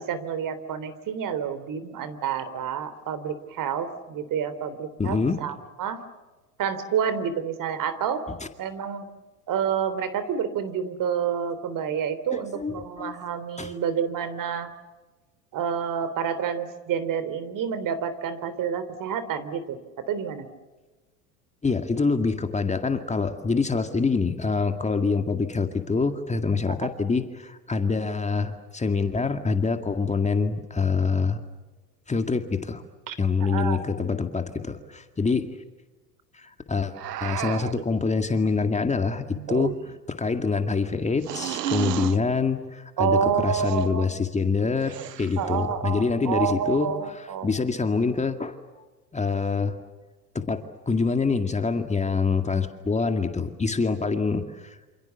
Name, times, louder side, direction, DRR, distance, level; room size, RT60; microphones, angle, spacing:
voice 1, 0.0-6.0 6.6-8.3 8.6-9.1 9.5-14.7 15.5-19.8 20.1-20.5 26.7-26.8 33.1-33.2 33.4-33.8 43.0-44.1 45.4-47.5, right 7 dB, 40° right, 13 dB, 3.6 m, -28 dB
voice 2, 5.0-5.4 12.3-13.2 13.6-13.7 21.6-31.4 32.1-32.8 33.2-35.6 36.3-36.9 37.2-48.6 49.1-49.8 50.3-54.8, left 4 dB, 15° left, 7 dB, 2.2 m, -25 dB
sound 1, 37.0-37.9 39.4-40.1 41.2-42.2 43.5-43.9 44.8-45.5, right 12 dB, 90° right, 1.0 m, -32 dB
28.0 x 27.5 x 7.1 m, 1.2 s
hypercardioid pair, 95°, 47 cm